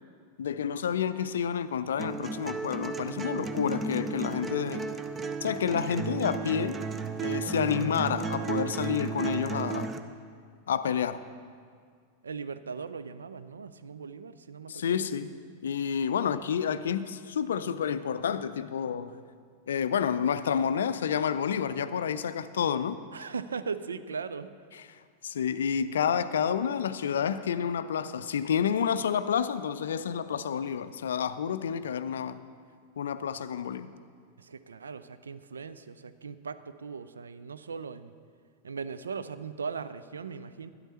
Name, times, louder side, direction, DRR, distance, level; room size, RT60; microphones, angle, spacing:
voice 1, 0.4-4.9 5.4-6.8 7.2-9.9 10.7-11.2 14.7-15.3 15.6-19.1 19.7-23.0 24.7-24.8 25.2-32.4 33.0-33.9, left 8 dB, 65° left, 13 dB, 0.4 m, -29 dB
sound 1, 2.0-10.0, right 5 dB, 20° right, 0.6 m, -34 dB
voice 2, 12.2-15.1 23.1-24.5 34.4-38.1 38.6-40.7, right 5 dB, 70° right, 13 dB, 0.4 m, -39 dB
12.0 x 11.0 x 4.3 m, 2.1 s
figure-of-eight pair, 90°, 0 cm